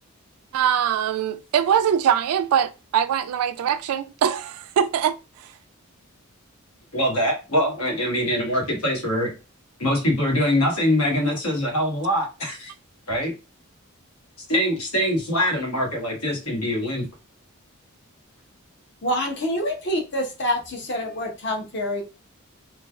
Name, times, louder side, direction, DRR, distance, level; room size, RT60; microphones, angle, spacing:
voice 1, 0.5-5.5, right 8 dB, 85° right, 0.3 m, -23 dB
voice 2, 6.9-9.3 9.8-12.7 13.1-13.3 14.5-17.0, equal, 85° left, 1.3 m, -23 dB
voice 3, 19.0-22.0, equal, 50° left, 0.7 m, -26 dB
3.1 x 2.2 x 2.3 m
head